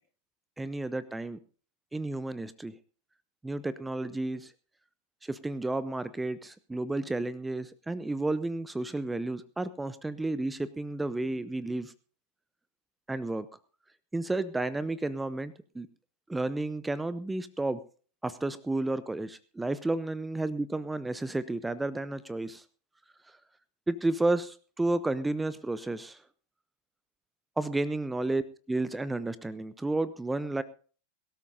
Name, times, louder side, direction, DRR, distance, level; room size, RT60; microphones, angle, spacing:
voice 1, 0.6-1.4 1.9-2.8 3.4-4.5 5.2-11.9 13.1-13.5 14.1-15.9 16.3-17.8 18.2-22.6 23.9-26.2 27.6-28.4 28.7-30.6, right 2 dB, 10° right, 16 dB, 0.7 m, -32 dB
22.5 x 13.0 x 2.7 m, 0.42 s
figure-of-eight pair, 90°, 0 cm